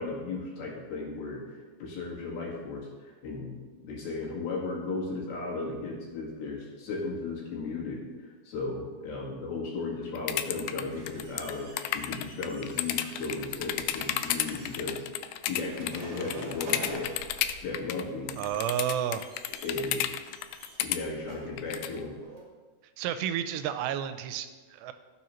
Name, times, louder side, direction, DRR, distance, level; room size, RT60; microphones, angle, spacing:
voice 1, 0.0-2.9 3.2-8.0 8.5-15.0 15.5-17.1 17.6-18.4 19.6-20.1 20.8-22.2, left 3 dB, 70° left, -3 dB, 3.7 m, -35 dB
sound 1, 10.2-18.0 18.3-21.0 21.6-22.0, left 12 dB, 85° left, 2.1 m, -31 dB
sound 2, 10.9-22.4, right 2 dB, 60° right, 3.3 m, -48 dB
voice 2, 18.4-19.3 23.0-24.9, right 10 dB, 90° right, 10 dB, 2.8 m, -31 dB
16.0 x 7.0 x 3.1 m, 1.3 s
omnidirectional pair, 4.8 m